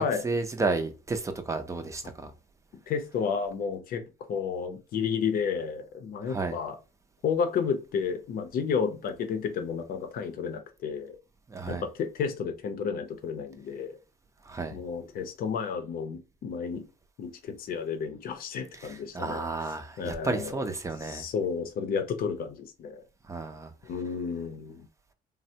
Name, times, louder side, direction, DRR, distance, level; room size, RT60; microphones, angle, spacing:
voice 1, 0.0-2.3 6.3-6.6 11.5-11.8 14.5-14.8 19.1-21.2 23.3-23.7, right 3 dB, 20° right, 0.5 m, -32 dB
voice 2, 2.9-4.0 4.3-6.8 7.2-11.2 11.7-14.0 14.7-16.8 17.2-19.4 20.0-20.6 21.0-23.0 23.8-24.9, left 6 dB, 60° left, 0.6 m, -31 dB
3.3 x 2.1 x 2.7 m
cardioid pair, 110°, 17 cm